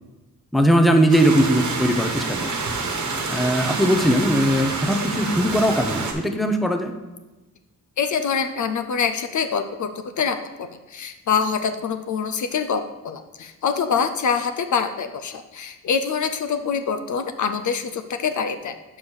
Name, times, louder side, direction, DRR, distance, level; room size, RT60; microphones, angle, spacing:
voice 1, 0.5-2.5 3.3-6.9, equal, ahead, 5 dB, 0.6 m, -19 dB
sound 1, 1.1-6.1, right 3 dB, 50° right, 1.3 m, -27 dB
voice 2, 8.0-9.9 10.2-19.0, left 6 dB, 55° left, 8 dB, 0.6 m, -25 dB
5.5 x 5.1 x 6.2 m, 1.1 s
cardioid pair, 95°, 36 cm